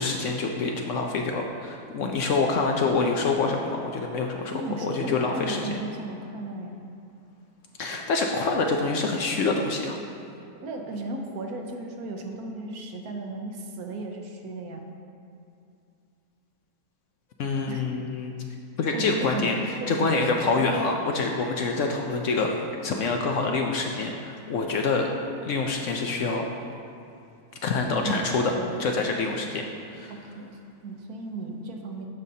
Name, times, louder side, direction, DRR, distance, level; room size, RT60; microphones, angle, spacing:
voice 1, 0.0-5.8 7.8-10.0 17.4-18.3 18.8-19.5 19.9-25.1 25.4-26.4 27.6-28.5 28.8-29.6 29.9-30.1, left 3 dB, 65° left, 2 dB, 0.8 m, -26 dB
voice 2, 4.5-6.8 10.6-14.9 17.7-17.8 18.9-20.7 27.9-28.7 29.3-29.5 30.1-32.1, right 2 dB, 75° right, 3 dB, 1.3 m, -35 dB
13.5 x 5.4 x 2.8 m, 2.6 s
omnidirectional pair, 1.6 m